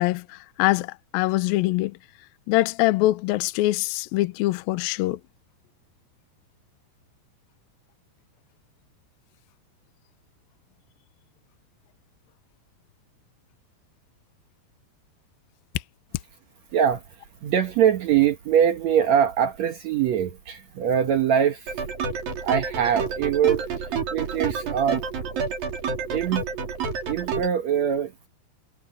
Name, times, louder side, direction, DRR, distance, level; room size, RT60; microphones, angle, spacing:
voice 1, 0.0-2.0 2.5-5.2, left 18 dB, 85° left, 2.1 m, -23 dB
voice 2, 16.7-17.0 17.4-21.8 22.4-23.8 24.1-25.0 26.1-26.4 27.1-28.3, right 9 dB, 75° right, 1.6 m, -23 dB
sound 1, 21.7-27.5, right 5 dB, 60° right, 5.2 m, -29 dB
omnidirectional pair, 4.9 m